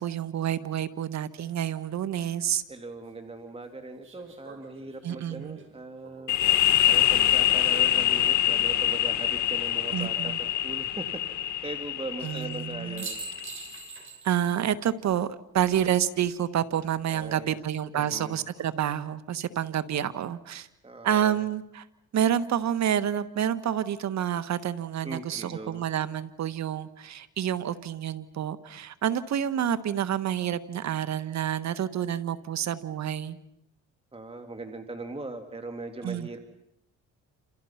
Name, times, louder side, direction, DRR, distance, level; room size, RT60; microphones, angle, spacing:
voice 1, 0.0-2.6 5.0-5.6 9.9-10.4 12.2-13.1 14.2-20.7 21.0-21.8 22.1-33.4 36.0-36.4, right 10 dB, 65° right, 14 dB, 1.4 m, -28 dB
sound 1, 2.6-2.7 4.0-7.3 9.1-9.7 12.5-12.6 13.0-14.5 14.8-14.9 17.3-17.8, right 5 dB, 40° right, 6.0 m, -45 dB
voice 2, 2.7-6.4 6.9-11.2 11.6-13.2 17.1-17.6 17.9-18.4 20.8-21.4 25.0-25.8 34.1-36.4, right 2 dB, 20° right, 6 dB, 2.5 m, -40 dB
sound 2, 6.3-13.7, left 12 dB, 70° left, 1.9 m, -25 dB
29.5 x 28.0 x 5.8 m, 0.77 s
cardioid pair, 90°, 30 cm